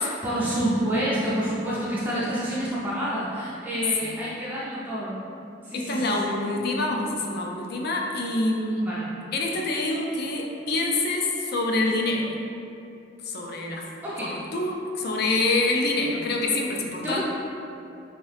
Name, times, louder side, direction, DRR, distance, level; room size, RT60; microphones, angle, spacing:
voice 1, 0.0-5.2 5.6-6.1 8.8-9.1 14.0-14.4 17.0-17.2, right 1 dB, 10° right, -8 dB, 0.4 m, -28 dB
voice 2, 5.7-8.9 9.3-12.3 13.2-13.9 14.2-17.2, left 2 dB, 60° left, 0 dB, 0.4 m, -26 dB
2.8 x 2.6 x 3.3 m, 2.7 s
head